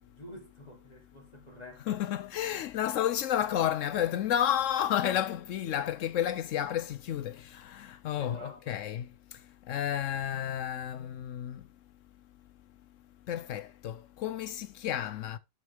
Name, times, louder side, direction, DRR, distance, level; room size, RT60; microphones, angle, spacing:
voice 1, 0.0-2.0 8.2-8.8, left 1 dB, 25° left, 2.7 m, -48 dB
voice 2, 1.9-9.1 9.7-11.6 13.3-15.4, left 10 dB, 70° left, 0.7 m, -31 dB
9.2 x 6.2 x 3.4 m
omnidirectional pair, 1.8 m